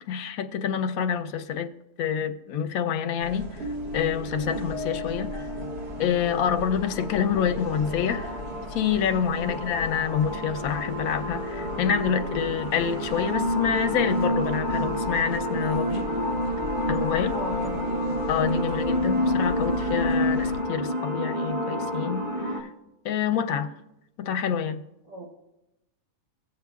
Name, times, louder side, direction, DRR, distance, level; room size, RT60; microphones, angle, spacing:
voice 1, 0.1-1.7 2.0-3.7 3.9-5.5 6.0-8.4 8.7-16.1 16.9-17.4 18.3-22.7 23.0-23.7 24.2-24.8, left 8 dB, 70° left, 8 dB, 1.0 m, -27 dB
sound 1, 3.2-20.6, left 2 dB, 45° right, 1.2 m, -38 dB
sound 2, 4.0-22.6, equal, 20° right, 1.4 m, -29 dB
voice 2, 17.3-17.9 18.5-19.3 25.1-25.4, right 2 dB, 85° right, -3 dB, 2.3 m, -38 dB
16.5 x 7.6 x 2.3 m, 0.90 s
omnidirectional pair, 1.7 m